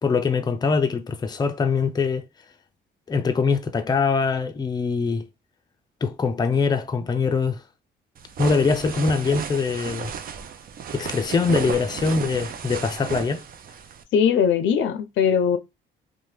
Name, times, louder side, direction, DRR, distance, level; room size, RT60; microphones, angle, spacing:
voice 1, 0.0-2.2 3.1-5.3 6.0-7.6 8.4-10.1 10.9-13.4, left 4 dB, 20° left, 0.4 m, -23 dB
sound 1, 8.2-14.0, right 7 dB, 45° right, 0.4 m, -33 dB
voice 2, 14.1-15.6, left 7 dB, 75° left, 0.5 m, -20 dB
2.8 x 2.1 x 3.2 m
cardioid pair, 90°, 20 cm